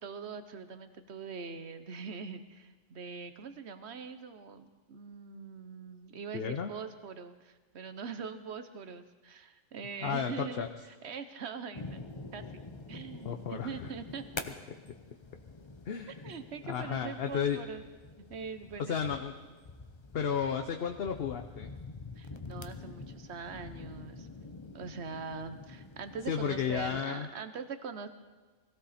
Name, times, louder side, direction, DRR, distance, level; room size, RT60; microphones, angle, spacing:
voice 1, 0.0-12.0 12.3-12.6 12.9-14.4 16.2-17.8 18.2-19.2 22.2-24.3 24.7-28.1, right 5 dB, 55° right, 10 dB, 1.2 m, -43 dB
voice 2, 6.3-6.7 10.0-10.7 13.2-13.9 15.9-16.1 16.6-17.6 18.8-19.3 20.1-21.7 26.3-27.3, left 7 dB, 55° left, 6 dB, 0.9 m, -33 dB
sound 1, 11.7-27.0, left 3 dB, 30° left, 0.6 m, -47 dB
21.0 x 16.0 x 4.3 m, 1.3 s
omnidirectional pair, 1.4 m